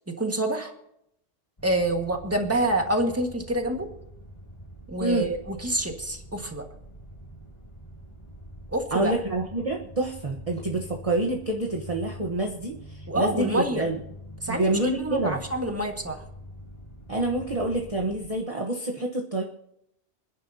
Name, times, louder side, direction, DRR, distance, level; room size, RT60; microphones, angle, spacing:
voice 1, 0.1-0.7 1.6-3.9 4.9-6.6 8.7-9.2 13.1-13.9 14.4-16.2, right 1 dB, 10° right, 3 dB, 1.6 m, -27 dB
sound 1, 1.6-18.3, equal, 25° left, 2.4 m, -45 dB
voice 2, 8.9-14.0 14.5-15.4 17.1-19.4, right 2 dB, 30° right, -1 dB, 1.2 m, -27 dB
27.0 x 10.5 x 2.8 m, 0.75 s
omnidirectional pair, 1.2 m